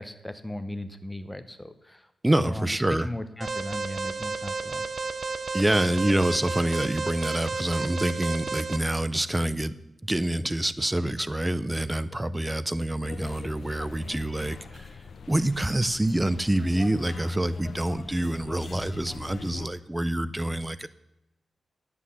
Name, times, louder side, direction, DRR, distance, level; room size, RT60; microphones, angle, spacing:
voice 1, 0.0-2.1 2.4-4.8, left 1 dB, 10° left, 10 dB, 1.0 m, -37 dB
voice 2, 2.2-3.1 5.5-15.0 15.3-20.9, right 1 dB, 15° right, 15 dB, 0.7 m, -26 dB
Alarm, 3.4-8.8, right 4 dB, 50° right, 0.9 m, -32 dB
sound 1, 13.0-19.7, left 5 dB, 70° left, 0.9 m, -43 dB
9.8 x 8.3 x 7.1 m, 0.94 s
cardioid pair, 75°, 0 cm